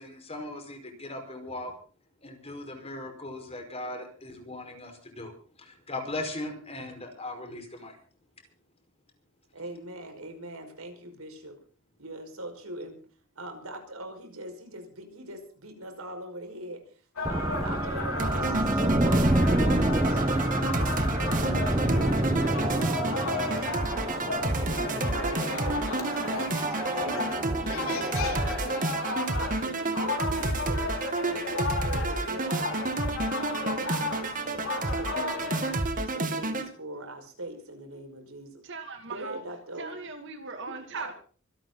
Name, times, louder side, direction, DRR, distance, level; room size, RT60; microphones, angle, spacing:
voice 1, 0.0-1.7 2.2-5.3 5.6-8.0, left 2 dB, 30° left, 5 dB, 4.9 m, -38 dB
voice 2, 9.5-11.6 12.0-13.0 13.4-27.2 27.7-28.9 29.6-32.9 33.4-35.6 36.1-38.6 39.1-40.0 40.6-41.1, right 1 dB, 90° right, 5 dB, 5.5 m, -42 dB
sound 1, 17.2-35.8, left 4 dB, 85° left, 4.5 m, -35 dB
sound 2, 17.3-29.2, right 1 dB, 15° right, 0.8 m, -28 dB
sound 3, 18.2-36.7, right 2 dB, 40° right, 2.3 m, -30 dB
voice 3, 38.6-39.4 39.8-41.1, right 4 dB, 60° right, 6 dB, 2.5 m, -39 dB
25.0 x 12.0 x 4.0 m, 0.41 s
head